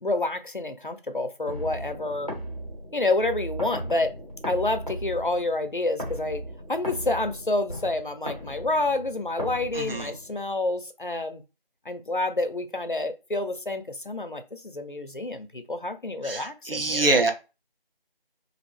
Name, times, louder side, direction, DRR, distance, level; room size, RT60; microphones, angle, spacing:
voice 1, 0.0-2.3 2.9-4.2 4.5-6.4 6.7-11.4 11.9-17.1, left 2 dB, 60° left, 8 dB, 0.5 m, -28 dB
sound 1, 1.5-10.5, equal, 40° right, 0.9 m, -37 dB
voice 2, 9.8-10.1 16.2-17.3, right 2 dB, 70° right, 4 dB, 0.7 m, -24 dB
2.4 x 2.0 x 3.3 m, 0.29 s
figure-of-eight pair, 180°, 29 cm